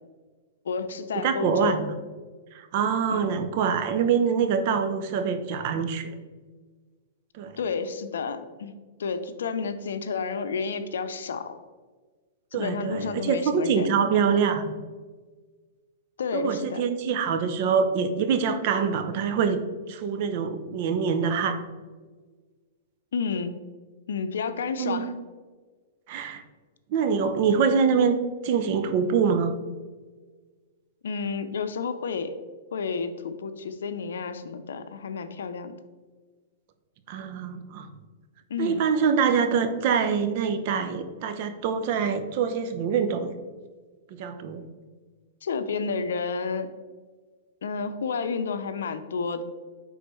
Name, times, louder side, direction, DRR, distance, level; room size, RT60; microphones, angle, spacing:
voice 1, 0.6-1.8 3.1-3.5 7.6-8.7 9.0-11.6 12.5-14.1 16.2-16.8 23.1-23.6 24.1-25.1 31.0-32.4 32.7-35.8 38.5-38.8 45.4-46.7 47.6-49.4, left 5 dB, 85° left, 10 dB, 0.6 m, -30 dB
voice 2, 1.2-1.9 2.5-6.1 7.4-7.6 12.5-14.7 16.3-19.6 19.9-21.6 24.8-25.1 26.1-26.4 26.9-28.2 28.4-29.5 37.1-37.9 38.6-43.3 44.1-44.6, right 6 dB, 50° right, 9 dB, 0.7 m, -25 dB
9.7 x 3.8 x 3.1 m, 1.4 s
hypercardioid pair, 140°, 0 cm